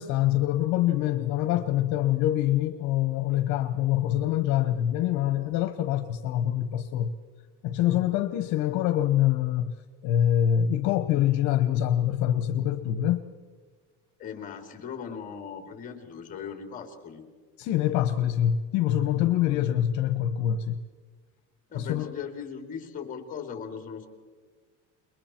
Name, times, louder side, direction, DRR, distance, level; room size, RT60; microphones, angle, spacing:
voice 1, 0.0-7.1 7.6-9.7 10.0-13.2 17.6-20.8 21.7-22.1, left 11 dB, 60° left, 9 dB, 1.1 m, -25 dB
voice 2, 14.2-17.3 19.5-19.6 21.7-24.1, left 7 dB, 25° left, 5 dB, 2.9 m, -39 dB
30.0 x 21.5 x 4.5 m, 1.6 s
cardioid pair, 165°, 32 cm